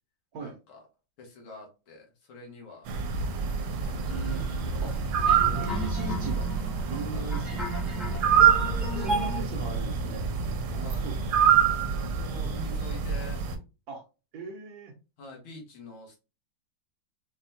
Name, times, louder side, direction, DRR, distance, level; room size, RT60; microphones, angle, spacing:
voice 1, 0.4-0.8 1.2-2.9 3.8-4.4 7.1-7.4 10.8-11.1 12.2-13.4 15.2-16.2, left 3 dB, 75° left, 0 dB, 2.1 m, -46 dB
sound 1, 2.9-13.6, right 7 dB, 85° right, 1.5 m, -26 dB
sound 2, 4.1-9.4, right 1 dB, ahead, 0.4 m, -35 dB
voice 2, 5.4-6.5 6.9-7.6 8.9-10.3 10.7-11.4 13.9-14.0 14.3-14.9, right 2 dB, 60° right, 2 dB, 1.1 m, -39 dB
5.3 x 2.2 x 2.7 m, 0.30 s
omnidirectional pair, 2.3 m